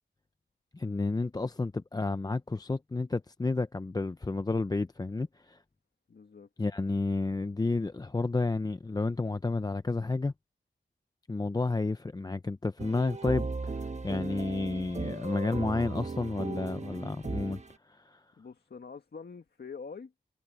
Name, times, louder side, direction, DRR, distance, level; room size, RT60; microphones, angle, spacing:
voice 1, 0.7-5.6 6.6-10.3 11.3-17.6 17.9-18.2, left 3 dB, 20° left, 0.5 m, -31 dB
voice 2, 6.1-6.5 18.4-20.1, left 5 dB, 55° left, 1.7 m, -45 dB
sound 1, 12.8-17.8, right 3 dB, 35° right, 1.3 m, -37 dB
wide cardioid pair, 85°, 20 cm